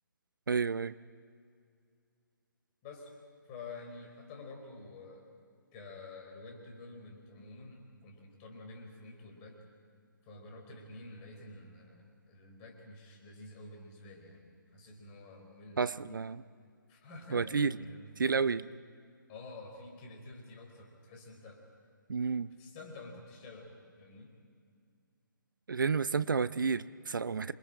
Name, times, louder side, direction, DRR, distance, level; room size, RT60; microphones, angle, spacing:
voice 1, 0.5-0.9 15.8-16.4 17.3-17.8 18.2-18.6 22.1-22.5 25.7-27.5, right 5 dB, 70° right, 17 dB, 0.6 m, -30 dB
voice 2, 2.8-3.1 3.4-5.3 5.7-9.6 10.2-16.2 16.9-18.8 19.3-21.6 22.6-24.4, left 2 dB, 25° left, 2 dB, 4.2 m, -49 dB
27.0 x 23.5 x 4.9 m, 2.3 s
figure-of-eight pair, 140°, 11 cm